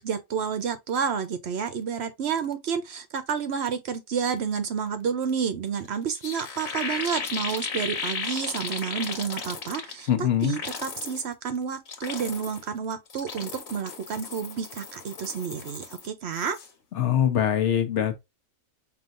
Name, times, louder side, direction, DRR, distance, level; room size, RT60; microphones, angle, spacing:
voice 1, 0.0-16.6, right 7 dB, 60° right, 0.8 m, -30 dB
sound 1, 5.8-5.9 6.1-10.1 10.4-11.2 11.7-12.7 13.1-16.1 16.3-16.7, left 5 dB, 80° left, 1.5 m, -35 dB
voice 2, 10.1-10.6 17.0-18.2, left 9 dB, 65° left, 1.1 m, -23 dB
5.2 x 2.9 x 2.4 m
omnidirectional pair, 1.4 m